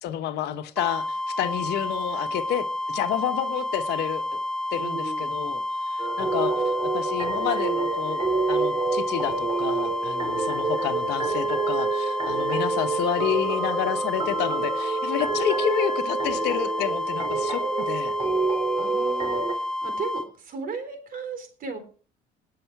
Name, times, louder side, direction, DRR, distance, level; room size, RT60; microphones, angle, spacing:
voice 1, 0.0-4.2 4.7-5.6 5.9-6.5 6.8-18.1, left 11 dB, 80° left, 1.2 m, -29 dB
sound 1, 0.8-20.3, left 1 dB, 5° left, 1.2 m, -30 dB
voice 2, 4.7-5.3 18.7-21.8, right 4 dB, 55° right, 3.7 m, -36 dB
sound 2, 6.0-19.5, right 4 dB, 35° right, 2.9 m, -28 dB
19.5 x 6.9 x 4.7 m
cardioid pair, 110°, 17 cm